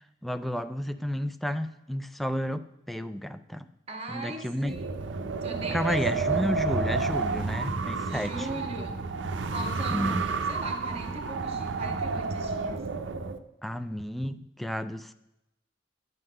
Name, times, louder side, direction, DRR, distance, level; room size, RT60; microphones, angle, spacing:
voice 1, 0.2-3.7 4.1-4.8 5.7-8.5 9.9-10.2 13.6-15.1, equal, ahead, 10 dB, 0.3 m, -31 dB
voice 2, 3.9-5.0 5.4-6.5 8.0-9.1 9.4-12.9, right 2 dB, 35° right, 2 dB, 1.5 m, -39 dB
Wind, 4.7-13.4, right 4 dB, 75° right, 0.6 m, -30 dB
11.0 x 3.8 x 7.6 m, 0.88 s
head